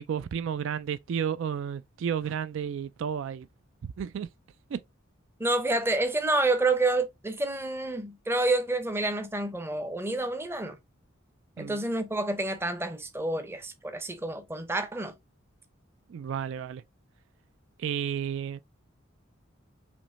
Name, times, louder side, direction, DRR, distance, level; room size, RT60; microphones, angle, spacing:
voice 1, 0.0-3.5 3.8-4.3 4.7-4.8 11.6-11.8 16.1-16.8 17.8-18.6, right 8 dB, 65° right, 0.3 m, -32 dB
voice 2, 5.4-10.8 11.6-15.1, right 2 dB, 10° right, 0.6 m, -28 dB
5.1 x 3.0 x 2.8 m
head